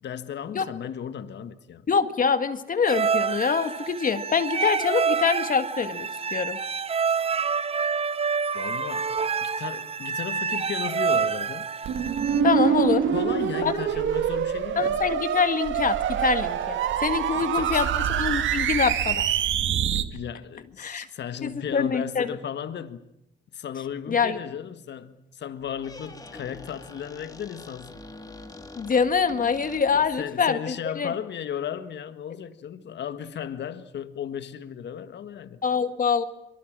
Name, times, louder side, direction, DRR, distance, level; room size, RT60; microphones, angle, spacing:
voice 1, 0.0-1.9 8.5-9.1 9.4-11.7 13.1-15.1 17.3-17.9 20.1-23.0 23.5-28.0 29.9-35.6, left 9 dB, 60° left, 1.7 m, -35 dB
voice 2, 1.9-6.6 12.4-13.0 13.6-13.7 14.8-19.3 20.8-21.1 21.4-22.3 24.1-24.4 28.8-31.1 35.6-36.2, left 6 dB, 45° left, 1.9 m, -25 dB
sound 1, 2.9-12.4, right 6 dB, 30° right, 0.9 m, -27 dB
sound 2, 11.8-20.0, right 9 dB, 75° right, 1.8 m, -25 dB
Squeak, 25.6-30.2, left 2 dB, 20° left, 2.7 m, -45 dB
24.5 x 24.0 x 7.6 m
cardioid pair, 90°, 20 cm